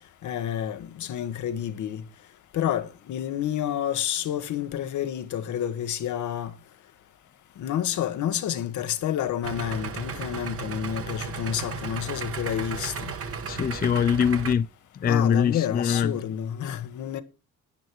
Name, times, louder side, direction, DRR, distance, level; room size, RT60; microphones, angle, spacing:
voice 1, 0.2-2.0 2.5-6.5 7.6-13.1 15.1-17.2, left 10 dB, 75° left, 1.3 m, -29 dB
Idling, 9.4-14.5, right 5 dB, 50° right, 1.4 m, -34 dB
voice 2, 13.5-14.7 15.0-16.1, left 7 dB, 30° left, 0.4 m, -23 dB
10.5 x 9.2 x 4.6 m
cardioid pair, 90°, 30 cm